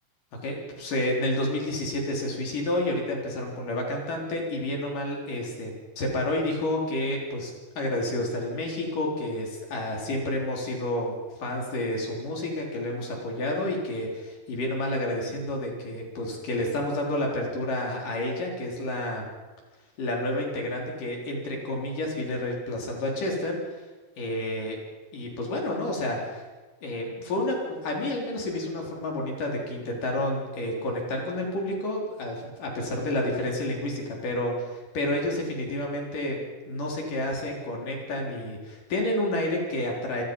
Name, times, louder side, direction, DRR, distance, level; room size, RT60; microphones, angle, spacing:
voice 1, 0.4-11.1 11.4-19.3 20.0-23.6 24.2-24.8 25.1-26.4 26.8-36.4 36.7-40.2, left 1 dB, 60° left, 0 dB, 5.3 m, -30 dB
28.5 x 19.0 x 5.5 m, 1.3 s
omnidirectional pair, 4.3 m